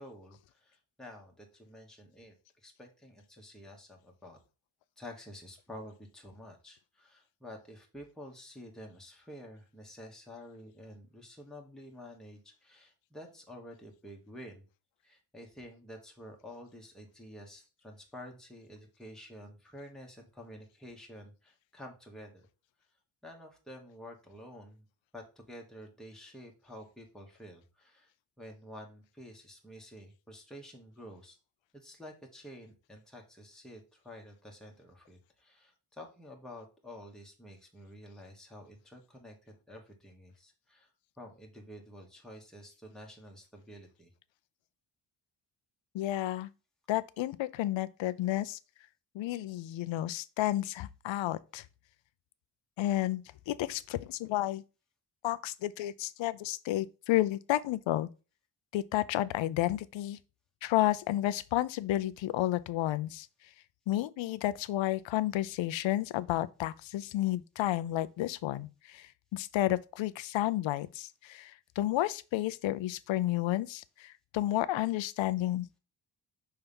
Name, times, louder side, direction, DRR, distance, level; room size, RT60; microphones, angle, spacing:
voice 1, 0.0-2.3 2.6-4.4 5.0-14.6 15.0-22.5 23.2-24.8 25.1-28.1 28.4-31.4 31.7-40.9 41.2-44.1, equal, ahead, 1.4 m, -50 dB
voice 2, 45.9-46.5 46.9-48.6 49.1-51.6 52.8-54.6 55.2-58.1 58.7-60.2 60.6-63.3 63.9-75.8, left 14 dB, 85° left, 0.6 m, -31 dB
5.6 x 3.5 x 5.3 m
cardioid pair, 115°, 44 cm